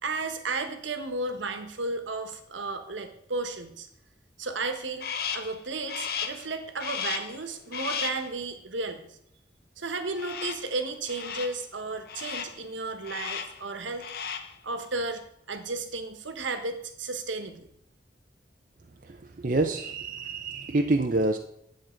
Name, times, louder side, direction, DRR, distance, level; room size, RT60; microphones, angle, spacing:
voice 1, 0.0-3.9 4.4-9.2 9.8-14.1 14.6-15.2 15.5-17.7, right 3 dB, 80° right, 7 dB, 1.3 m, -33 dB
Crow, 5.0-5.6 5.9-6.5 6.8-7.4 7.7-8.3 10.2-10.7 11.1-11.6 12.1-12.6 13.0-13.6 13.9-14.6, left 7 dB, 50° left, 0.8 m, -34 dB
voice 2, 19.0-21.4, right 2 dB, 45° right, 4 dB, 0.5 m, -27 dB
10.5 x 7.6 x 4.4 m, 0.74 s
head